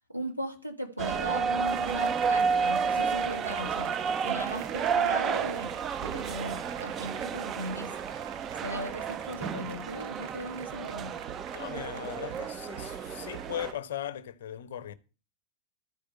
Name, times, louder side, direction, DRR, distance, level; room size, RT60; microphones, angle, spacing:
voice 1, 0.1-4.0 4.2-5.7 6.0-8.1 8.6-11.2, right 1 dB, 90° right, 1.6 m, -37 dB
sound 1, 1.0-13.7, right 6 dB, 25° right, 0.5 m, -31 dB
sound 2, 1.6-13.8, right 9 dB, 50° right, 0.9 m, -44 dB
voice 2, 11.5-14.9, left 10 dB, 60° left, 0.8 m, -38 dB
12.5 x 5.0 x 7.4 m
figure-of-eight pair, 90°, 0 cm